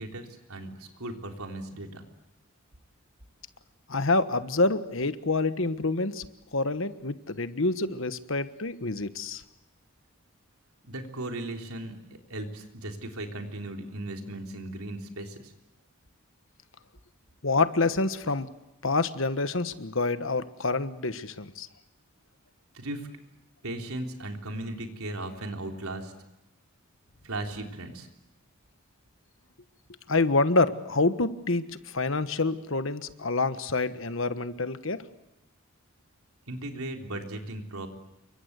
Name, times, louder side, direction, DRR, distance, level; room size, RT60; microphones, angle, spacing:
voice 1, 0.0-2.0 10.8-12.0 12.3-15.5 22.7-23.1 23.6-26.1 27.2-28.1 36.5-37.9, right 1 dB, 85° right, 4 dB, 3.7 m, -37 dB
voice 2, 3.9-6.2 6.5-9.4 17.4-18.5 18.8-21.7 30.1-35.0, left 3 dB, 65° left, 12 dB, 1.3 m, -27 dB
29.0 x 24.0 x 8.2 m, 0.90 s
head